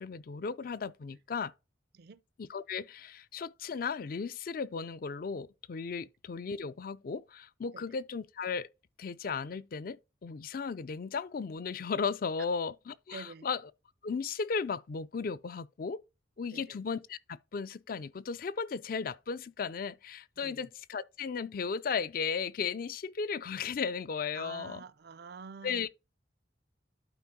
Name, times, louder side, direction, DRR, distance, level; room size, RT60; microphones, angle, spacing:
voice 1, 0.0-1.5 2.4-8.7 9.0-13.7 14.0-16.0 16.4-24.8 25.6-25.9, left 5 dB, 50° left, 0.4 m, -35 dB
voice 2, 13.1-13.5 16.5-16.8 20.4-20.7 24.3-25.9, right 5 dB, 55° right, 0.4 m, -47 dB
12.0 x 4.5 x 2.7 m
head